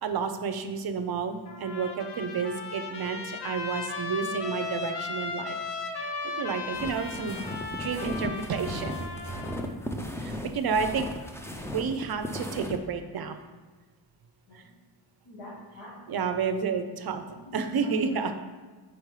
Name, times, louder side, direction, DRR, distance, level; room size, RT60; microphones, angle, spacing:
voice 1, 0.0-5.6 6.2-7.4 7.7-9.0 10.5-11.1 11.6-13.4 14.5-14.6 16.1-17.2 17.5-18.3, right 5 dB, 50° right, 8 dB, 0.6 m, -30 dB
Trumpet, 1.5-9.6, left 4 dB, 60° left, 0.9 m, -36 dB
sound 1, 6.7-12.8, left 1 dB, 5° left, 0.4 m, -37 dB
voice 2, 9.8-10.4 14.5-14.6 15.2-16.0 17.3-18.3, left 1 dB, 85° left, -8 dB, 1.8 m, -46 dB
5.1 x 4.6 x 4.8 m, 1.3 s
wide cardioid pair, 130°, 47 cm